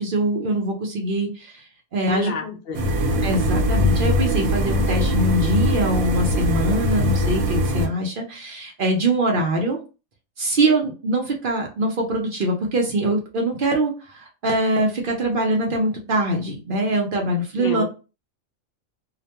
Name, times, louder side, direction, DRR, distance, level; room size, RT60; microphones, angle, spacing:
voice 1, 0.0-1.6 1.9-2.3 3.2-9.8 10.4-17.8, right 1 dB, 60° right, 1 dB, 0.6 m, -23 dB
voice 2, 2.0-2.9 17.6-17.8, left 4 dB, 60° left, 2 dB, 0.6 m, -29 dB
sound 1, 2.7-7.9, equal, 85° right, 1.0 m, -21 dB
2.4 x 2.1 x 2.8 m, 0.31 s
omnidirectional pair, 1.4 m